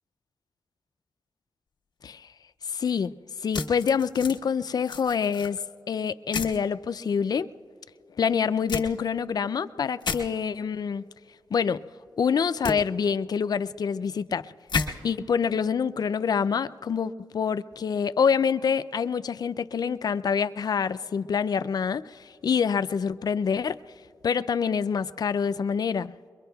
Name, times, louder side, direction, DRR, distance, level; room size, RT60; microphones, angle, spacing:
voice 1, 2.7-3.1 3.4-5.6 5.9-7.5 8.2-11.0 11.5-11.8 12.2-14.4 15.0-23.8 24.2-26.1, left 6 dB, 55° left, 13 dB, 0.3 m, -26 dB
sound 1, 3.5-4.4 4.8-5.5 6.3-6.6 8.7-8.8 10.0-10.2 12.6-12.7 14.7-14.9, left 4 dB, 70° left, 1.3 m, -30 dB
23.0 x 22.5 x 2.3 m, 2.3 s
wide cardioid pair, 90°, 8 cm